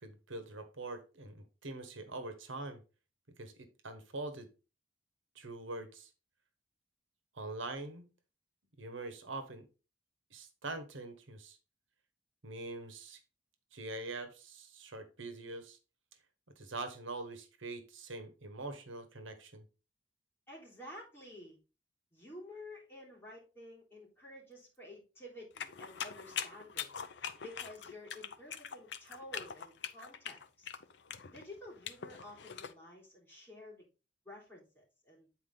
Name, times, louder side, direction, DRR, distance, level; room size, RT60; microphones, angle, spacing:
voice 1, 0.0-2.8 3.4-4.5 5.3-6.1 7.3-8.1 8.8-9.6 10.3-11.6 12.4-13.2 13.7-15.8 16.6-19.6, right 2 dB, 85° right, 8 dB, 1.3 m, -44 dB
voice 2, 20.5-21.6 22.1-26.9 27.4-30.7 31.3-33.9 34.2-35.3, left 1 dB, 10° left, -4 dB, 3.5 m, -51 dB
sound 1, 25.6-32.7, left 8 dB, 65° left, 0.6 m, -43 dB
8.6 x 4.6 x 3.8 m, 0.32 s
head